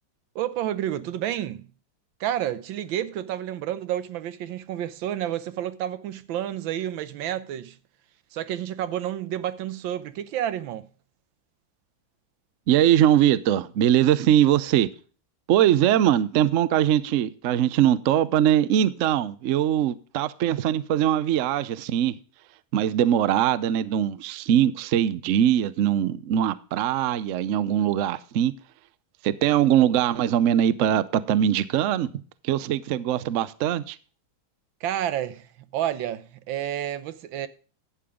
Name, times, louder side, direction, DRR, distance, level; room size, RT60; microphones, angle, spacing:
voice 1, 0.3-1.7 2.2-7.8 8.3-10.9 34.8-35.5 35.7-37.5, right 11 dB, 90° right, 1.5 m, -30 dB
voice 2, 12.7-14.9 15.5-22.1 22.7-28.5 29.2-32.1 32.4-34.0, right 11 dB, 70° right, 0.7 m, -21 dB
11.5 x 8.7 x 3.6 m
omnidirectional pair, 2.1 m